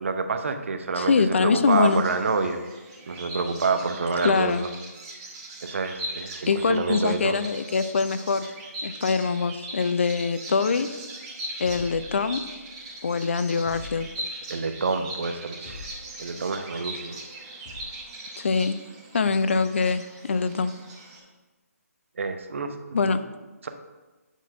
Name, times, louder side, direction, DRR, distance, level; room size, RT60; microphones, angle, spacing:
voice 1, 0.0-2.6 3.1-4.7 5.6-7.4 14.5-17.2 22.2-23.2 23.6-23.7, right 4 dB, 50° right, 7 dB, 0.7 m, -28 dB
voice 2, 0.9-2.0 4.2-4.7 6.5-8.5 8.8-10.9 11.6-12.4 13.0-14.1 18.4-18.8 19.1-20.7 22.9-23.2, left 5 dB, 50° left, 12 dB, 0.4 m, -23 dB
Bird vocalization bird call bird song, 1.6-21.2, right 1 dB, 25° right, 1.5 m, -40 dB
sound 1, 11.7-12.8 13.7-14.5 15.7-16.3 17.7-18.1, left 4 dB, 35° left, 1.6 m, -44 dB
8.1 x 4.2 x 4.8 m, 1.2 s
figure-of-eight pair, 145°, 9 cm